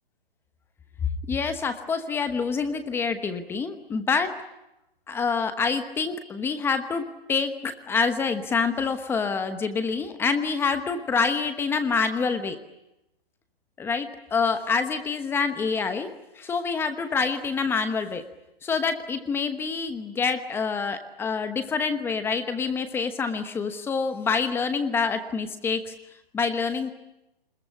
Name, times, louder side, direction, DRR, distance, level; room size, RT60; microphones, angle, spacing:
voice 1, 1.3-4.3 5.1-12.6 13.8-16.1 16.4-18.2 18.6-25.9 26.3-26.9, left 5 dB, 10° left, 9 dB, 1.1 m, -26 dB
25.5 x 21.5 x 9.8 m, 0.93 s
hypercardioid pair, 150°, 30 cm